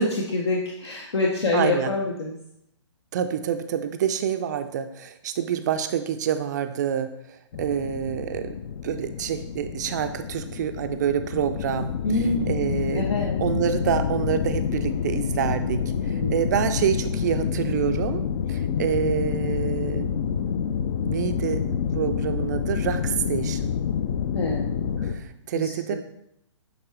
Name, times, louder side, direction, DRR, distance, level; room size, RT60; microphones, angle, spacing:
voice 1, 0.0-2.3 12.0-12.6 12.9-13.4 16.1-16.4 24.3-24.7 25.0-25.1 25.5-26.0, left 2 dB, 60° left, 0 dB, 0.9 m, -26 dB
voice 2, 1.5-1.9 3.1-8.6 8.8-13.1 13.4-18.2 18.5-20.2 21.0-21.7 21.9-23.7 25.0-26.0, right 9 dB, 35° right, 9 dB, 0.4 m, -27 dB
sound 1, 7.5-25.2, left 7 dB, 40° left, 0.4 m, -28 dB
8.5 x 3.6 x 3.4 m, 0.77 s
figure-of-eight pair, 125°, 16 cm